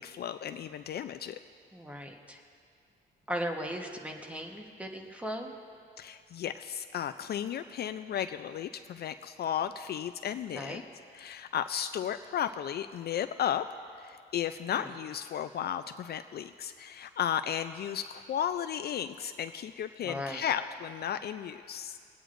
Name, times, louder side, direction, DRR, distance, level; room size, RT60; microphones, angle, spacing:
voice 1, 0.0-1.4 6.0-10.8 11.1-13.6 14.0-22.0, left 9 dB, 55° left, 10 dB, 0.4 m, -34 dB
voice 2, 1.7-2.4 3.3-5.5 10.5-10.8 14.7-14.9 20.0-20.4, equal, 5° right, 3 dB, 1.1 m, -37 dB
24.0 x 9.0 x 2.5 m, 2.2 s
cardioid pair, 90°, 20 cm